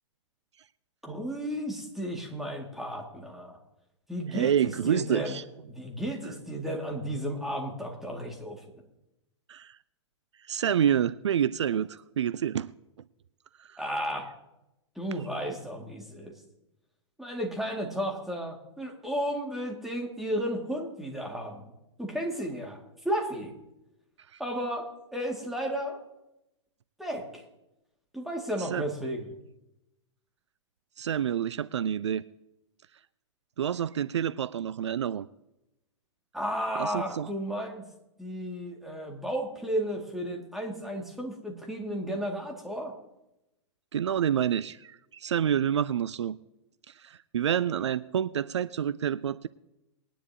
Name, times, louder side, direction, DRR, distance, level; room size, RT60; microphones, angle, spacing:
voice 1, 1.0-3.6 4.1-5.3 5.7-8.6 13.8-14.3 15.0-16.3 17.2-21.6 22.0-22.8 23.0-23.5 24.4-26.0 27.0-27.4 28.1-29.3 36.3-37.8 38.2-42.9, equal, ahead, 0 dB, 2.1 m, -33 dB
voice 2, 4.3-5.4 9.5-9.8 10.5-12.7 13.6-13.8 24.3-24.4 28.6-28.8 31.0-32.2 33.6-35.3 36.8-37.3 43.9-46.4 46.9-49.5, right 9 dB, 65° right, 17 dB, 0.4 m, -28 dB
21.5 x 10.0 x 2.8 m, 0.91 s
figure-of-eight pair, 105°, 16 cm